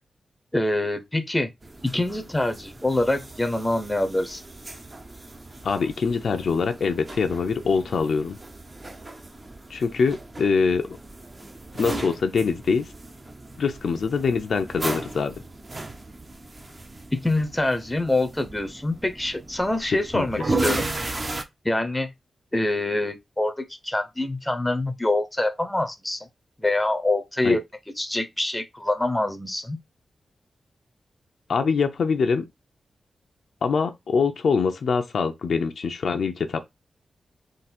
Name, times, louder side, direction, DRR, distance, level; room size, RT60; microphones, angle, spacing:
voice 1, 0.5-1.5 1.8-4.4 17.1-20.9 21.6-22.1 22.5-26.3 26.6-27.6 28.0-29.8, left 2 dB, 10° left, 0.7 m, -25 dB
sound 1, 1.6-21.4, right 2 dB, 30° right, 0.7 m, -36 dB
voice 2, 5.6-8.4 9.7-11.0 11.8-12.9 13.6-15.3 20.1-20.3 27.4-27.6 31.5-32.4 33.6-36.6, left 5 dB, 70° left, 0.6 m, -24 dB
3.8 x 2.6 x 4.3 m
wide cardioid pair, 135°, 0 cm